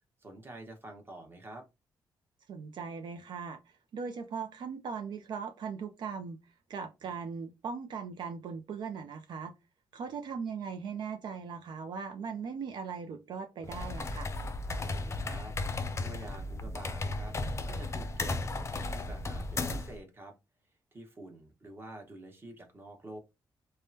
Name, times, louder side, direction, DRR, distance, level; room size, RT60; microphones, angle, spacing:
voice 1, 0.2-1.7 14.7-17.3 17.7-20.3 20.9-23.2, right 1 dB, 30° right, 1.1 m, -48 dB
voice 2, 2.5-6.4 6.7-9.5 9.9-14.3, right 6 dB, 70° right, 0.5 m, -39 dB
sound 1, 13.6-20.0, left 2 dB, 35° left, 0.5 m, -35 dB
3.4 x 2.2 x 2.7 m
cardioid pair, 100°, 8 cm